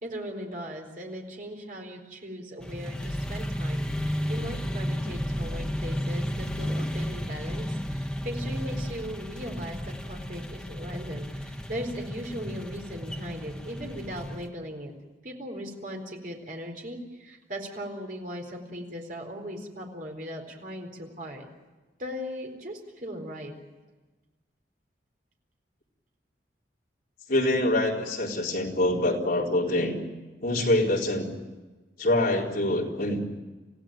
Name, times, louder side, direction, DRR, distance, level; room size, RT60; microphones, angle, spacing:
voice 1, 0.0-14.9 15.2-21.5 22.0-23.5, equal, 45° right, 2 dB, 4.1 m, -38 dB
sound 1, 2.6-14.5, equal, 5° left, 1.1 m, -33 dB
voice 2, 27.3-30.0 30.4-31.3 32.0-33.2, left 1 dB, 55° left, -1 dB, 4.1 m, -25 dB
28.5 x 16.0 x 9.2 m, 1.2 s
head